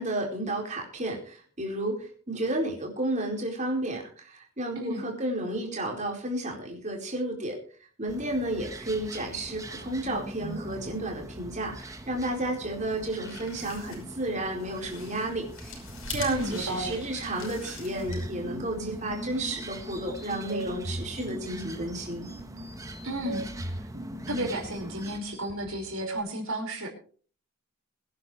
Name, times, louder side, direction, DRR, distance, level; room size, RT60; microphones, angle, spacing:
voice 1, 0.0-7.6 8.0-15.8 16.1-22.3, right 1 dB, 35° right, 0 dB, 4.5 m, -32 dB
sound 1, 8.1-25.2, right 1 dB, 15° right, 1.2 m, -42 dB
sound 2, 13.0-18.5, left 3 dB, 75° left, 5.5 m, -43 dB
voice 2, 16.2-17.0 23.0-23.5 23.8-23.9 24.3-26.9, right 1 dB, 85° right, 2 dB, 5.1 m, -33 dB
sound 3, 17.9-26.2, right 1 dB, 55° right, 2.9 m, -40 dB
23.0 x 10.5 x 3.3 m, 0.42 s
head